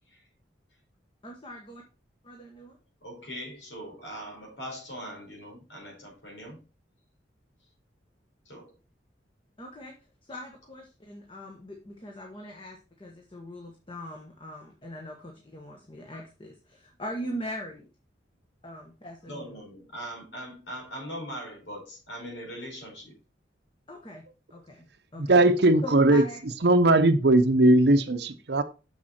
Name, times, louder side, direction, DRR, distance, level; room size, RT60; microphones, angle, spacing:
voice 1, 1.2-1.8 2.2-2.8 9.6-9.9 10.2-17.9 18.6-19.6 23.9-24.9 25.1-25.4 25.8-26.4, equal, 30° left, 1.3 m, -41 dB
voice 2, 3.0-6.6 8.4-8.7 19.3-23.1, equal, 85° left, 4.7 m, -41 dB
voice 3, 25.2-26.2 26.6-28.6, right 2 dB, 60° right, 0.8 m, -19 dB
6.8 x 6.4 x 4.3 m
head